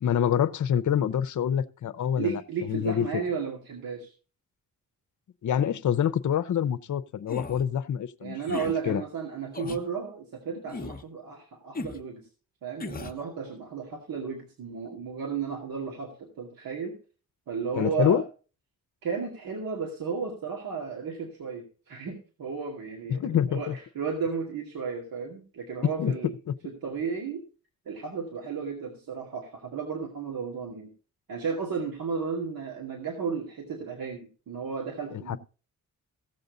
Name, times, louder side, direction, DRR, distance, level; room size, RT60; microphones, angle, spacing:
voice 1, 0.0-2.4 2.7-3.1 5.4-8.6 8.8-9.0 17.8-18.2 23.1-23.8 26.0-26.1 35.1-35.4, left 9 dB, 60° left, 0.7 m, -26 dB
voice 2, 2.2-4.1 8.2-12.3 12.6-17.0 17.5-18.2 19.0-26.3 26.6-27.4 27.9-30.9 31.3-35.4, right 5 dB, 80° right, 2.3 m, -34 dB
sound 1, 7.3-7.6 8.4-8.8 9.5-9.9 10.7-11.1 11.7-12.0 12.8-13.2, left 3 dB, 25° left, 1.0 m, -37 dB
16.0 x 6.9 x 3.8 m
cardioid pair, 80°, 34 cm